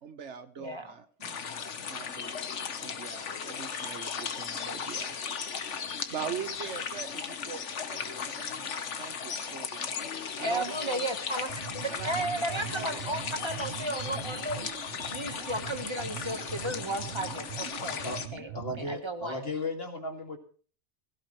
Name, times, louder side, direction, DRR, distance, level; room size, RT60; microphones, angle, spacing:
voice 1, 0.0-1.1 1.9-2.4 2.8-5.2 5.9-11.1 11.9-13.3 18.3-18.5, right 7 dB, 75° right, 11 dB, 1.3 m, -42 dB
voice 2, 0.6-0.9 1.2-1.3 10.4-11.5 11.8-14.7 15.1-18.0 18.3-18.5 18.8-19.4, right 1 dB, 25° right, 7 dB, 1.3 m, -34 dB
sound 1, 1.2-18.3, left 6 dB, 80° left, 1.4 m, -37 dB
sound 2, 11.4-19.0, right 9 dB, 60° right, 1.0 m, -42 dB
voice 3, 18.5-20.4, left 2 dB, 60° left, 4 dB, 2.4 m, -35 dB
16.5 x 16.5 x 3.1 m, 0.41 s
omnidirectional pair, 1.2 m